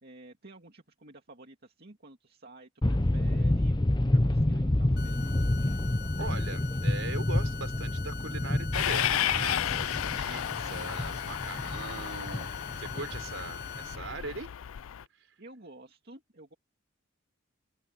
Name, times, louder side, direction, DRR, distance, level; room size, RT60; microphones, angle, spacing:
voice 1, 0.0-3.7 4.1-5.4 15.4-16.5, right 2 dB, 50° right, 2.5 m, -51 dB
sound 1, 2.8-14.3, left 1 dB, 20° left, 0.8 m, -29 dB
sound 2, 5.0-14.0, left 8 dB, 50° left, 1.4 m, -43 dB
voice 2, 6.2-12.5 12.8-14.5 15.2-15.3, right 3 dB, 65° right, 5.0 m, -40 dB
Train, 8.7-15.0, left 11 dB, 75° left, 0.4 m, -33 dB
open air
head